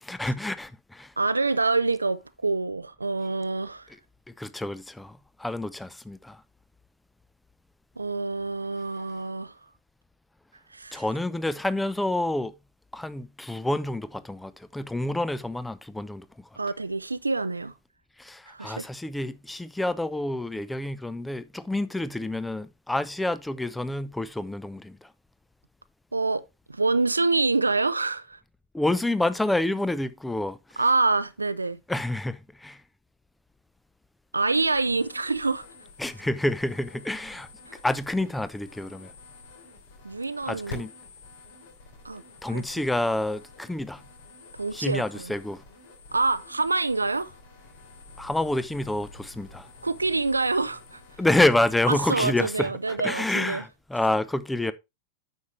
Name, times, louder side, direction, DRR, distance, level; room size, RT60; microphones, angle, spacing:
voice 1, 0.0-1.1 4.4-6.4 10.9-12.5 12.9-16.2 18.2-25.1 28.7-30.8 31.9-32.8 36.0-37.5 37.8-39.1 40.5-40.9 42.4-44.0 44.7-45.6 48.2-49.7 51.2-54.7, left 1 dB, 5° left, 0.6 m, -28 dB
voice 2, 1.2-3.9 8.0-9.5 10.7-11.0 16.6-17.7 18.5-18.9 26.1-28.4 30.8-31.8 34.3-35.6 37.7-37.8 40.0-40.8 42.0-42.2 42.5-42.6 44.6-45.3 46.1-47.3 49.8-51.0 51.9-53.6, right 3 dB, 80° right, 0.5 m, -26 dB
sound 1, 34.5-52.0, left 3 dB, 55° left, 2.8 m, -48 dB
9.5 x 6.5 x 3.1 m
figure-of-eight pair, 90°, 0 cm